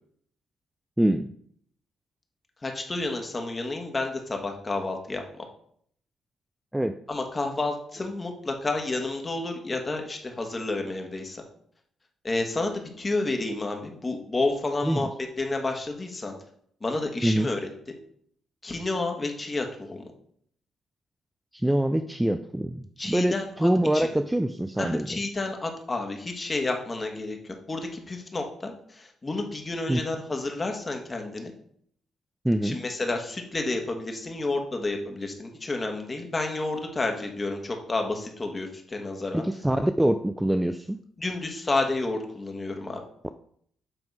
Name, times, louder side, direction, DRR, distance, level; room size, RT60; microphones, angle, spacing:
voice 1, 1.0-1.3 6.7-7.0 14.8-15.1 17.2-17.5 21.5-25.2 29.9-30.0 32.4-32.8 39.3-41.0, right 1 dB, 5° right, 0.3 m, -24 dB
voice 2, 2.6-5.5 7.1-11.4 12.2-15.1 15.4-16.3 16.8-17.6 18.6-20.1 23.0-24.1 24.8-31.5 32.6-39.4 41.2-43.0, left 2 dB, 25° left, 1.4 m, -30 dB
7.9 x 3.6 x 4.7 m
cardioid pair, 90°, 0 cm